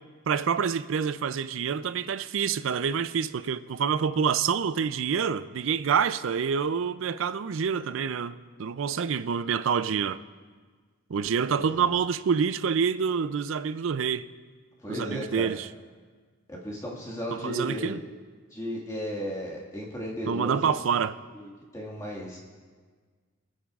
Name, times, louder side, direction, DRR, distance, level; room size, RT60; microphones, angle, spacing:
voice 1, 0.3-10.2 11.1-14.3 14.9-15.7 17.3-18.0 20.3-21.2, right 6 dB, 70° right, 0.4 m, -27 dB
voice 2, 11.5-11.9 14.8-15.5 16.5-18.0 18.5-20.7 21.3-22.4, equal, 15° left, 1.8 m, -35 dB
27.0 x 9.2 x 2.4 m
head